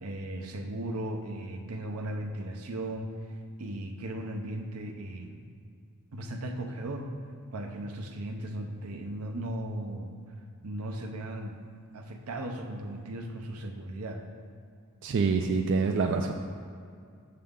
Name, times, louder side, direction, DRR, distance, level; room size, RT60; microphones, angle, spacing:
voice 1, 0.0-5.4 6.1-7.1 7.5-10.1 10.6-11.6 11.9-14.2, right 1 dB, 85° right, 4 dB, 0.7 m, -37 dB
voice 2, 15.0-16.3, right 4 dB, 55° right, 4 dB, 0.4 m, -26 dB
6.9 x 6.6 x 3.7 m, 2.3 s
head